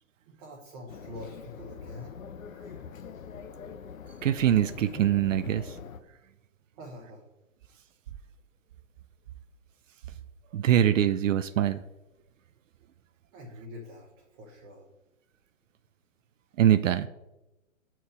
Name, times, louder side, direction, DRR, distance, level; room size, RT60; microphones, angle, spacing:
voice 1, 0.3-2.2 6.7-7.2 13.3-14.9, left 1 dB, 30° right, -3 dB, 1.0 m, -45 dB
sound 1, 0.9-6.0, left 6 dB, 80° left, 0.7 m, -43 dB
voice 2, 4.2-5.8 10.5-11.8 16.6-17.1, right 11 dB, 70° right, 13 dB, 0.5 m, -23 dB
6.4 x 4.4 x 5.2 m, 0.98 s
hypercardioid pair, 140°, 40 cm